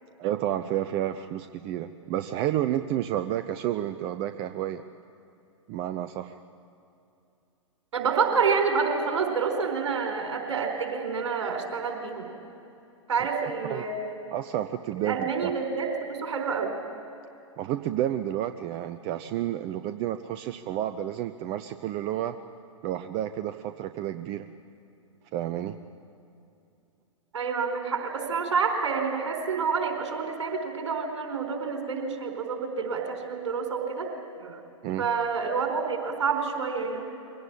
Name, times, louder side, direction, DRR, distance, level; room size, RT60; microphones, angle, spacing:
voice 1, 0.2-4.8 5.7-6.4 13.2-13.3 13.7-13.8 14.3-15.5 17.6-22.3 22.8-24.5 25.3-25.8 34.8-35.1, right 12 dB, 35° right, 10 dB, 0.7 m, -30 dB
voice 2, 7.9-12.3 13.1-14.2 15.0-16.7 27.3-34.1 34.4-34.6 35.0-37.1, right 5 dB, 65° right, 3 dB, 4.4 m, -28 dB
23.0 x 18.0 x 8.8 m, 2.7 s
figure-of-eight pair, 105°, 17 cm